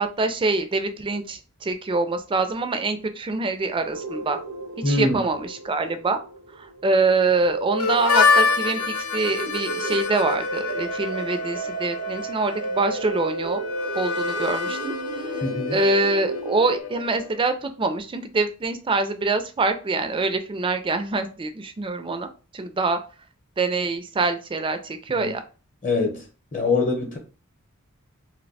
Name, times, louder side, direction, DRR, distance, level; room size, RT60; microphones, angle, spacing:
voice 1, 0.0-4.4 4.8-6.2 6.6-13.6 13.9-14.9 15.2-15.3 15.7-23.0 23.6-25.4, right 3 dB, 25° right, 0.4 m, -25 dB
sound 1, 3.9-16.8, right 2 dB, 80° right, 0.6 m, -33 dB
voice 2, 4.8-5.2 15.4-15.8 25.1-25.3 25.8-26.2 26.5-27.2, left 3 dB, 35° left, 0.8 m, -23 dB
Harmonica, 7.8-17.4, left 5 dB, 85° left, 0.5 m, -27 dB
2.6 x 2.1 x 4.0 m
head